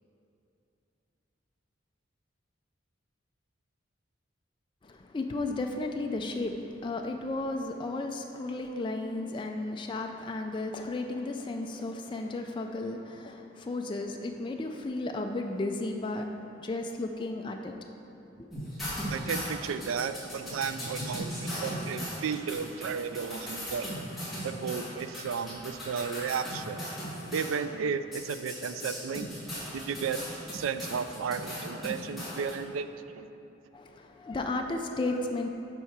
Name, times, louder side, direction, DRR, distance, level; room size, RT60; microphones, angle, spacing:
voice 1, 4.8-17.8 33.7-35.5, left 2 dB, 25° left, 3 dB, 0.3 m, -34 dB
sound 1, 18.5-27.6 28.1-32.5, equal, ahead, 1.8 m, -37 dB
voice 2, 19.1-26.9 27.3-29.4 29.7-33.3, right 6 dB, 85° right, 11 dB, 0.3 m, -34 dB
7.1 x 4.7 x 5.9 m, 2.8 s
head